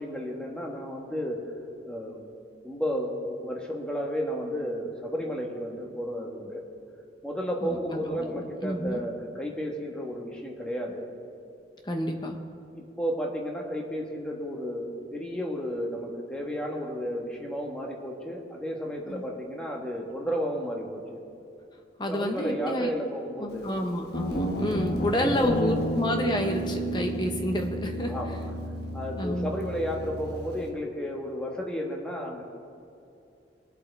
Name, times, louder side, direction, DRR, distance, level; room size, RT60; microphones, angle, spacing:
voice 1, 0.0-1.4 1.9-2.2 2.6-6.6 7.2-11.1 12.7-21.2 22.1-23.7 25.1-25.7 28.1-28.4 28.9-32.4, equal, 5° left, -1 dB, 1.4 m, -32 dB
voice 2, 8.1-9.0 11.8-12.4 19.1-19.2 22.0-22.9 23.4-28.4 29.2-29.5, equal, 25° left, 3 dB, 1.1 m, -29 dB
Guitar, 24.1-30.7, equal, 60° left, 1.2 m, -32 dB
22.0 x 8.1 x 3.5 m, 2.6 s
head